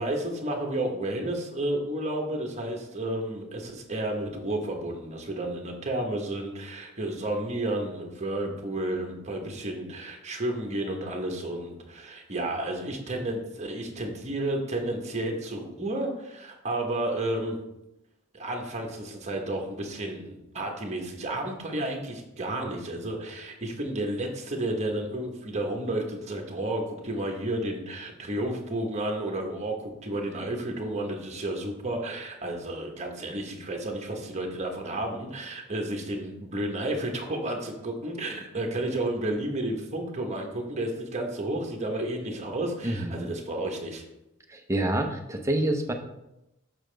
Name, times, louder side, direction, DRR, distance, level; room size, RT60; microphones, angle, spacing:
voice 1, 0.0-17.6 18.3-44.0, right 1 dB, 30° right, 2 dB, 1.1 m, -31 dB
voice 2, 42.8-43.3 44.5-45.9, right 1 dB, 15° right, 3 dB, 0.7 m, -27 dB
7.0 x 6.1 x 3.4 m, 0.91 s
head